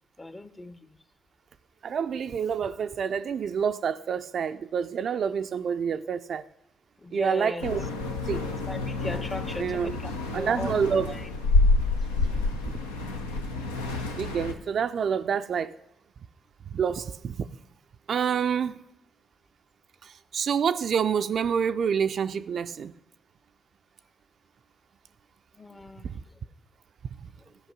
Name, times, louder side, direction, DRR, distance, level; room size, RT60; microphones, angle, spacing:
voice 1, 0.2-1.0 7.0-7.7 8.6-10.7 11.0-11.3 12.3-12.5 25.5-26.2, left 2 dB, 20° left, 13 dB, 0.7 m, -38 dB
voice 2, 1.8-6.4 7.1-7.8 8.3-8.4 9.6-9.9 10.3-11.1 14.2-15.7 16.7-17.5 18.1-18.8 20.3-22.9, right 7 dB, 55° right, 11 dB, 0.4 m, -27 dB
sound 1, 7.6-14.5, left 3 dB, 85° left, 0.7 m, -28 dB
13.5 x 5.3 x 5.1 m, 0.82 s
figure-of-eight pair, 40°, 0 cm